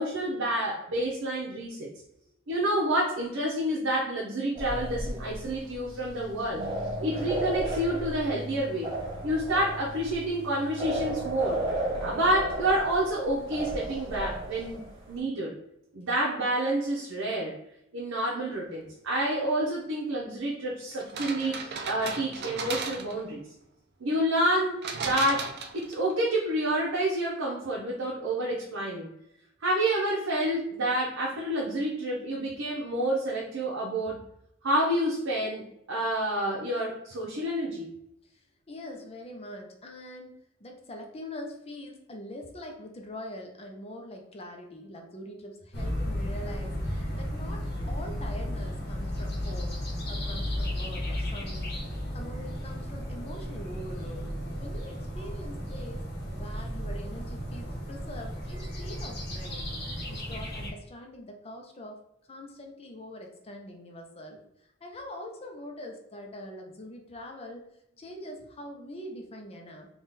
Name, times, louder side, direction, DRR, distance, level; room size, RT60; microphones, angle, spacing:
voice 1, 0.0-1.9 2.5-8.9 9.2-11.6 12.0-14.8 15.1-15.5 15.9-17.6 17.9-23.4 24.0-25.5 25.7-29.1 29.6-34.2 34.6-37.9, right 1 dB, 85° right, -4 dB, 0.8 m, -29 dB
sound 1, 4.5-15.2, right 1 dB, 25° right, 1.2 m, -34 dB
sound 2, 21.0-23.3 24.8-26.1, right 4 dB, 55° right, 0.5 m, -36 dB
voice 2, 38.2-51.8 52.1-54.3 54.6-59.7 60.1-62.0 62.3-67.7 68.0-69.9, left 1 dB, 30° left, 2 dB, 0.6 m, -43 dB
sound 3, 45.7-60.7, equal, 55° left, 1.0 m, -34 dB
3.7 x 2.4 x 4.0 m, 0.80 s
head